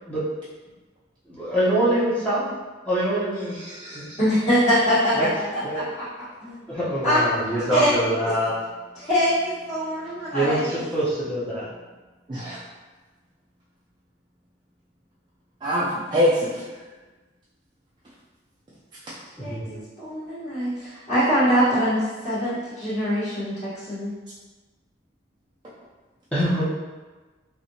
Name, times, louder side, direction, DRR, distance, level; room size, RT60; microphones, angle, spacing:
voice 1, 1.3-2.5 2.8-3.6 3.9-4.0 5.6-5.8 6.7-8.5 10.3-11.7 19.4-19.8 26.3-26.6, right 1 dB, 5° left, -10 dB, 0.7 m, -24 dB
voice 2, 3.5-4.0 12.3-12.6 15.6-16.6, equal, 25° right, -8 dB, 0.4 m, -24 dB
voice 3, 4.2-6.0 6.4-6.6 7.0-7.2 7.7-7.9 8.2-8.3 8.9-10.8 19.4-19.6 20.0-24.1, equal, 35° left, -15 dB, 1.2 m, -23 dB
3.2 x 2.8 x 2.7 m, 1.3 s
head